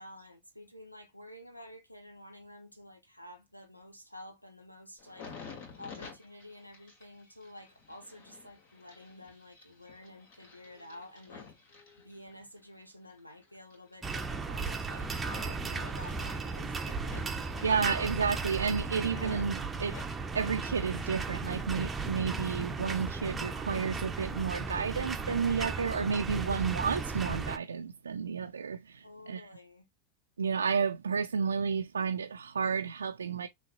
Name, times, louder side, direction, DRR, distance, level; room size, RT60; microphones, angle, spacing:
voice 1, 0.0-5.3 5.8-11.5 12.0-17.3 29.0-29.9, left 1 dB, 90° left, 1.2 m, -50 dB
sound 1, 5.0-12.6 13.1-15.7 15.9-16.7 17.0-19.5 19.8-21.4 21.6-22.4 22.9-23.1, left 5 dB, 55° left, 2.3 m, -52 dB
sound 2, 14.0-27.6, right 4 dB, 15° right, 0.7 m, -36 dB
voice 2, 17.6-20.0 20.3-29.5 30.4-33.5, right 6 dB, 70° right, 0.4 m, -31 dB
6.2 x 3.0 x 2.7 m
figure-of-eight pair, 90°, 0 cm